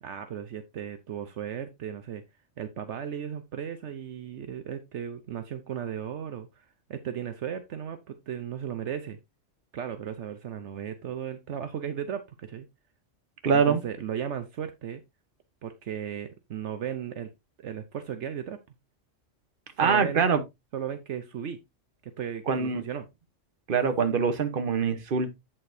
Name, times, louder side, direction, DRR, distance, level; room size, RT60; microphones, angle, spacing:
voice 1, 0.0-2.2 2.6-9.2 9.7-12.7 13.5-15.0 15.6-17.3 17.6-18.6 19.8-20.3 20.7-21.6 22.0-23.0, right 9 dB, 70° right, 1.1 m, -36 dB
voice 2, 13.4-13.8 19.8-20.4 22.5-22.8 23.7-25.4, right 6 dB, 45° right, 1.2 m, -24 dB
8.5 x 7.5 x 2.7 m
omnidirectional pair, 1.3 m